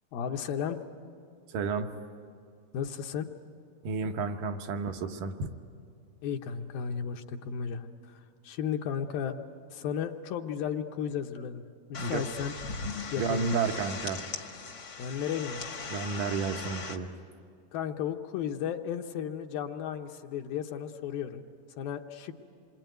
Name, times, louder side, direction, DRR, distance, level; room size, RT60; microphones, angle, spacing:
voice 1, 0.1-0.8 2.7-3.3 6.2-7.9 8.1-9.4 9.7-11.6 11.9-12.5 13.1-13.5 15.0-15.6 17.7-21.4 21.8-22.3, left 8 dB, 75° left, 4 dB, 2.5 m, -34 dB
voice 2, 1.5-1.9 3.8-5.5 12.0-12.2 13.2-14.2 15.9-17.1, right 4 dB, 70° right, 6 dB, 2.3 m, -31 dB
sound 1, 11.9-17.0, left 4 dB, 50° left, 1.3 m, -39 dB
27.5 x 22.5 x 9.2 m, 2.2 s
omnidirectional pair, 4.6 m